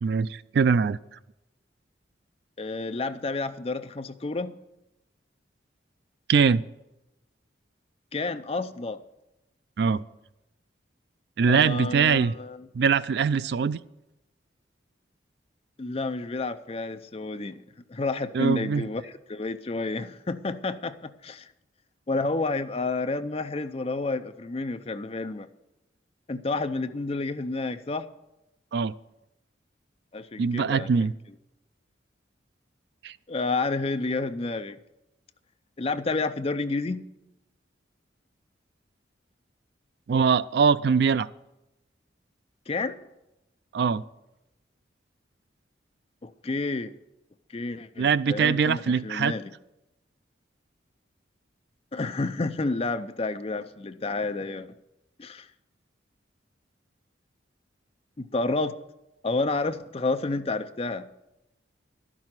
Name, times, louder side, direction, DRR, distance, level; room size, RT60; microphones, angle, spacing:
voice 1, 0.0-1.0 6.3-6.6 9.8-10.0 11.4-12.3 12.7-13.8 18.3-18.9 28.7-28.9 30.4-31.1 33.0-33.1 40.1-41.3 43.7-44.0 48.0-49.3, right 6 dB, 60° right, 17 dB, 0.3 m, -22 dB
voice 2, 2.6-4.5 8.1-9.0 11.5-12.6 15.8-17.6 17.9-21.5 22.1-25.5 26.3-28.1 30.1-30.9 33.3-34.8 35.8-37.0 42.7-43.0 46.2-46.9 47.5-49.5 51.9-54.7 55.2-55.5 58.2-58.8 59.2-61.1, left 3 dB, 30° left, 10 dB, 0.5 m, -30 dB
12.0 x 6.1 x 8.8 m, 0.93 s
head